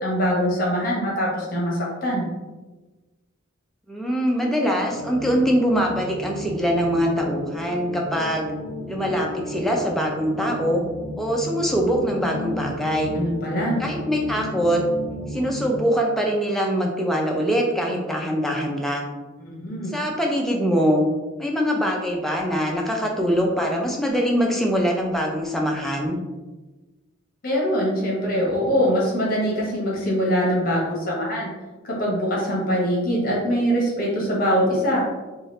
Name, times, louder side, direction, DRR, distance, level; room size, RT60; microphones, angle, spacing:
voice 1, 0.0-2.3 13.1-13.8 19.4-19.9 27.4-31.5 31.8-35.1, equal, 45° left, -4 dB, 1.0 m, -23 dB
voice 2, 3.9-8.5 8.9-10.8 11.2-13.1 13.8-14.8 15.3-19.1 19.9-21.0 21.4-26.2, equal, ahead, -1 dB, 0.3 m, -23 dB
sound 1, 4.9-15.8, equal, 55° right, 0.6 m, -34 dB
2.9 x 2.4 x 3.1 m, 1.2 s
head